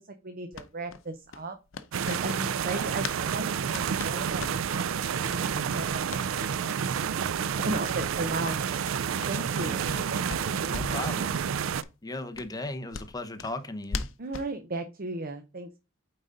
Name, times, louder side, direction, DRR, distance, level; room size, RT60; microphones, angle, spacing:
voice 1, 0.2-1.6 2.0-8.8 9.3-11.1 14.2-15.8, right 2 dB, 45° right, 0.7 m, -36 dB
sound 1, 0.5-3.2 3.5-4.9 5.3-5.4 5.7-6.3 6.6-6.8 7.1-7.2 7.5-7.7 8.0-10.0 10.3-11.0 11.3-11.5 11.8-11.9 12.3-14.5, left 4 dB, 75° left, 0.6 m, -40 dB
sound 2, 1.9-11.8, right 7 dB, 75° right, 0.4 m, -29 dB
voice 2, 2.7-3.1 9.3-10.2 10.7-11.4 12.0-14.1, left 2 dB, 20° left, 0.9 m, -38 dB
9.0 x 3.9 x 3.8 m
head